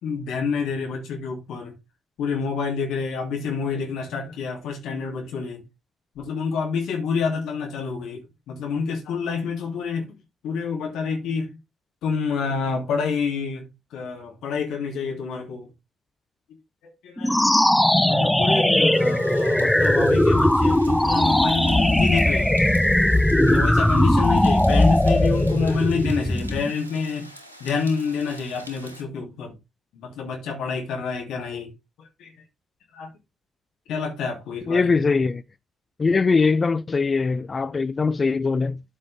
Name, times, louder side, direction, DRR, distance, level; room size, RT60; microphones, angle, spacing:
voice 1, 0.0-1.7 2.2-5.6 6.1-10.2 10.4-11.6 12.0-15.7 16.8-17.4 18.0-22.5 23.4-27.3 27.6-29.6 29.9-31.7 32.0-32.3 32.9-33.1 33.9-35.0, left 5 dB, 60° left, 2.8 m, -28 dB
sound 1, 17.2-26.7, left 1 dB, 5° left, 0.8 m, -19 dB
sound 2, 18.9-29.0, equal, 90° right, 1.1 m, -45 dB
voice 2, 34.7-35.4 36.0-38.8, left 4 dB, 30° left, 0.5 m, -21 dB
13.0 x 5.3 x 3.5 m
figure-of-eight pair, 40°, 0 cm